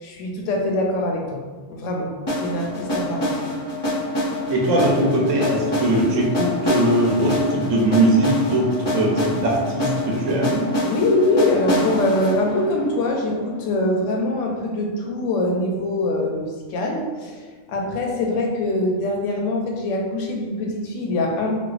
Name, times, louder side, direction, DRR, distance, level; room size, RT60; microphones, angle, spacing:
voice 1, 0.0-1.4 1.7-3.5 10.8-21.5, left 2 dB, 85° left, 1 dB, 0.9 m, -23 dB
sound 1, 2.3-14.2, left 1 dB, 30° left, 0.5 m, -26 dB
voice 2, 4.5-10.7, right 1 dB, 85° right, -2 dB, 1.0 m, -20 dB
4.3 x 2.2 x 2.4 m, 1.5 s
omnidirectional pair, 1.2 m